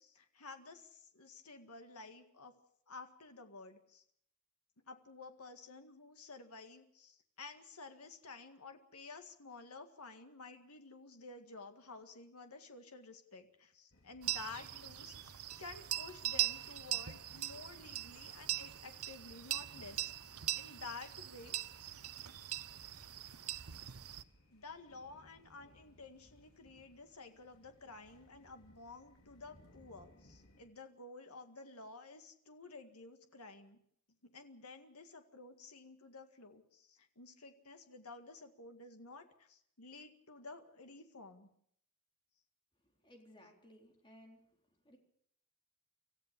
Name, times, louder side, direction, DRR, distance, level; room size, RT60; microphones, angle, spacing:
voice 1, 0.0-2.5 2.9-4.0 4.9-21.8 24.5-33.8 34.2-41.5, left 3 dB, 90° left, 6 dB, 1.9 m, -52 dB
sound 1, 13.9-30.7, left 1 dB, 70° left, 4.5 m, -66 dB
sound 2, 14.2-24.2, right 13 dB, 85° right, 0.9 m, -41 dB
voice 2, 42.8-44.4 44.8-45.0, equal, 20° left, 1 dB, 4.0 m, -60 dB
26.0 x 14.5 x 6.8 m, 0.68 s
head